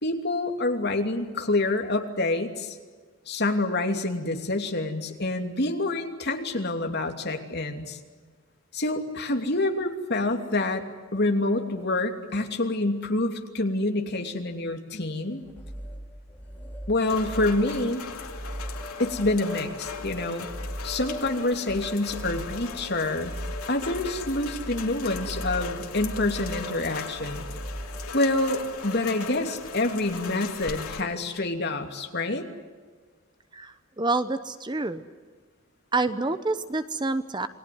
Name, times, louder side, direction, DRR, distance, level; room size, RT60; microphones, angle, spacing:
voice 1, 0.0-2.8 3.3-8.0 8.7-10.8 11.1-15.4 16.9-18.0 19.0-20.5 20.8-23.3 23.7-27.5 28.1-32.5, left 2 dB, 50° left, 5 dB, 2.9 m, -27 dB
sound 1, 15.3-28.8, equal, 10° left, 3.4 m, -39 dB
Rain, 17.1-31.0, left 5 dB, 80° left, 3.0 m, -39 dB
voice 2, 33.5-35.0 35.9-37.5, right 3 dB, 20° right, 12 dB, 0.9 m, -27 dB
29.0 x 21.0 x 9.5 m, 1.5 s
head